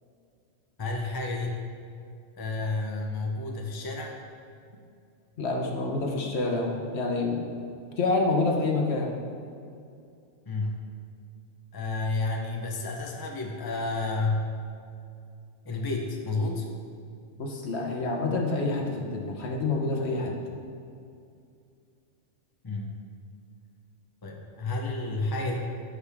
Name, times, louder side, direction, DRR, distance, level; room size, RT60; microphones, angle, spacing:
voice 1, 0.8-1.6 2.4-4.2 10.5-10.8 11.7-14.5 15.6-16.7 22.6-23.0 24.2-25.6, left 3 dB, 20° left, 0 dB, 0.8 m, -30 dB
voice 2, 5.4-7.4 8.0-9.1 17.4-20.3, left 3 dB, 65° left, 1 dB, 1.2 m, -27 dB
13.0 x 5.2 x 3.5 m, 2.4 s
omnidirectional pair, 1.2 m